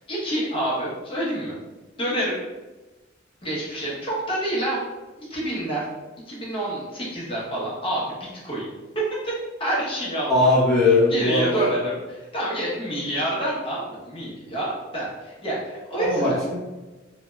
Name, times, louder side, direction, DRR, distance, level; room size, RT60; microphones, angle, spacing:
voice 1, 0.0-1.5 2.0-2.4 3.4-4.8 5.2-5.9 6.3-8.2 8.4-8.7 9.2-9.3 9.6-10.4 10.8-16.4, right 1 dB, 30° left, -7 dB, 0.9 m, -28 dB
voice 2, 10.2-11.7 16.0-16.5, left 2 dB, ahead, -11 dB, 0.8 m, -20 dB
3.1 x 2.7 x 2.2 m, 1.2 s
head